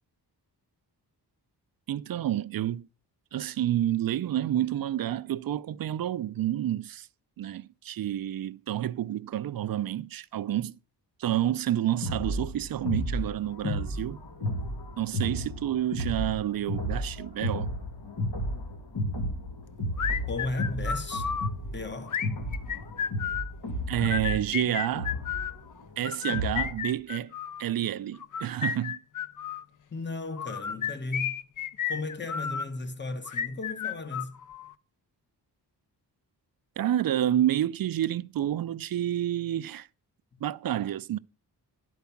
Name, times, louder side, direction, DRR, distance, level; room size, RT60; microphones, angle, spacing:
voice 1, 1.9-2.9 3.3-7.1 7.4-10.7 11.2-14.2 15.0-17.7 23.9-25.1 26.0-27.3 27.6-29.0 36.8-39.9 40.4-41.2, right 12 dB, 60° right, 0.5 m, -29 dB
sound 1, 12.0-26.8, equal, 70° left, 2.3 m, -33 dB
sound 2, 20.0-21.5 22.1-23.5 24.0-25.6 26.1-27.6 28.2-29.6 30.4-32.7 33.3-34.7, left 8 dB, 50° left, 0.6 m, -32 dB
voice 2, 20.2-21.3 21.7-22.2 29.9-31.4 31.9-34.4, left 2 dB, 25° left, 1.2 m, -35 dB
11.5 x 4.7 x 7.0 m
wide cardioid pair, 95°, 41 cm